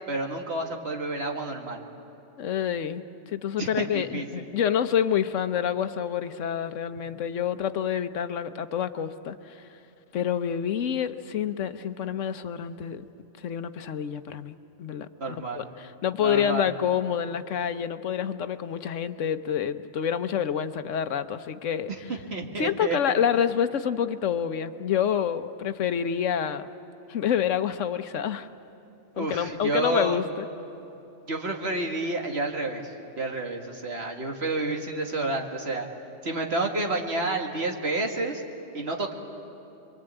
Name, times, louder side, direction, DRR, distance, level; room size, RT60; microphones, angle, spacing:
voice 1, 0.1-1.8 3.6-4.4 15.2-15.6 16.2-16.7 22.3-23.0 29.2-30.2 31.3-35.9 36.2-38.4 38.7-39.1, right 2 dB, 60° right, 1 dB, 2.2 m, -30 dB
voice 2, 2.4-3.0 3.3-9.7 10.1-13.0 13.4-21.9 22.6-26.7 27.1-28.5 29.2-30.5, left 8 dB, 85° left, 11 dB, 1.2 m, -28 dB
26.5 x 23.5 x 8.9 m, 2.9 s
omnidirectional pair, 1.2 m